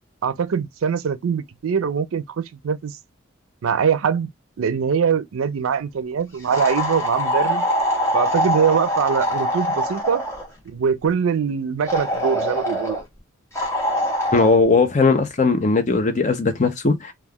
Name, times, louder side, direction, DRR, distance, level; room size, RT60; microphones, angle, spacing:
voice 1, 0.2-3.0 3.6-4.3 4.6-7.7 8.1-10.2 10.7-13.0, right 6 dB, 80° right, 0.4 m, -22 dB
sound 1, 6.5-10.5 11.9-13.0 13.6-14.5, equal, 15° left, 0.8 m, -23 dB
voice 2, 14.3-17.1, left 3 dB, 35° left, 0.5 m, -18 dB
2.3 x 2.3 x 3.4 m
head